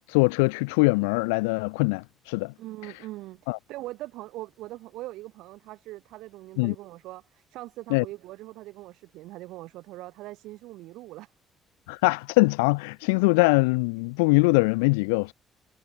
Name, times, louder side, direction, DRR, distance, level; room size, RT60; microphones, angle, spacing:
voice 1, 0.1-2.5 3.5-3.6 6.6-6.7 7.9-8.0 11.9-15.3, left 29 dB, 90° left, 0.4 m, -22 dB
voice 2, 2.6-11.3, right 17 dB, 80° right, 4.9 m, -41 dB
hypercardioid pair, 60°, 0 cm